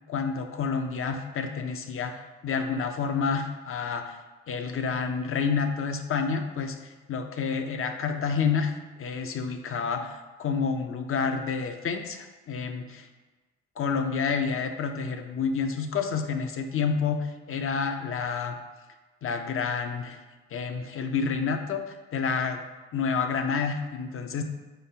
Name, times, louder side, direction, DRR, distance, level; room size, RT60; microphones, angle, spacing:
voice 1, 0.1-4.2 4.5-13.1 13.8-18.6 19.2-20.2 20.5-22.6 22.9-24.4, left 5 dB, 45° left, 6 dB, 0.6 m, -29 dB
4.9 x 3.8 x 2.8 m, 1.3 s
supercardioid pair, 60°, 30 cm